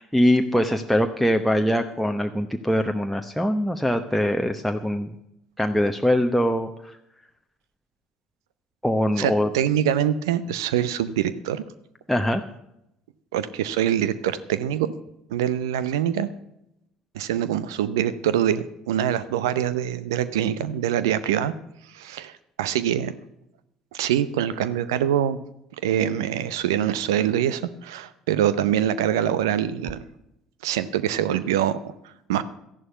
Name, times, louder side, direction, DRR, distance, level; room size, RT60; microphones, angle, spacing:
voice 1, 0.0-5.1 5.6-7.0 8.8-9.5 12.1-12.4, equal, ahead, 4 dB, 1.0 m, -22 dB
voice 2, 9.2-11.6 13.3-14.9 15.3-16.3 17.1-21.5 21.9-22.3 22.6-23.1 23.9-25.4 25.8-30.0 30.6-31.9 32.3-32.4, right 10 dB, 75° right, 15 dB, 0.7 m, -24 dB
13.5 x 11.0 x 5.7 m, 0.83 s
figure-of-eight pair, 60°, 2 cm